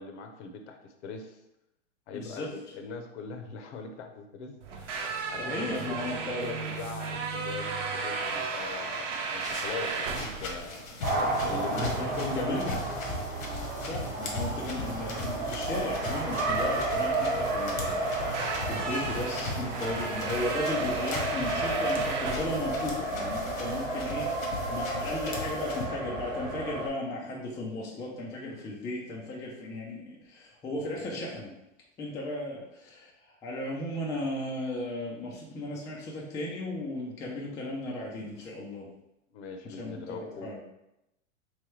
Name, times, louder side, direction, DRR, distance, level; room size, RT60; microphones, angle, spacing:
voice 1, 0.0-1.4 2.1-5.8 6.3-13.0 39.3-40.5, left 4 dB, 60° left, 5 dB, 0.8 m, -40 dB
voice 2, 2.1-2.5 5.4-6.5 11.7-12.8 13.8-18.1 18.4-31.5 32.0-38.9 39.6-40.6, left 1 dB, 10° left, -3 dB, 0.3 m, -36 dB
sound 1, 4.6-23.5, right 4 dB, 70° right, 0.9 m, -36 dB
sound 2, 9.4-25.9, left 2 dB, 80° left, 1.2 m, -39 dB
Race car auto racing, 11.0-26.9, right 2 dB, 25° right, 1.1 m, -32 dB
3.4 x 3.1 x 3.1 m, 0.86 s
hypercardioid pair, 115°, 40 cm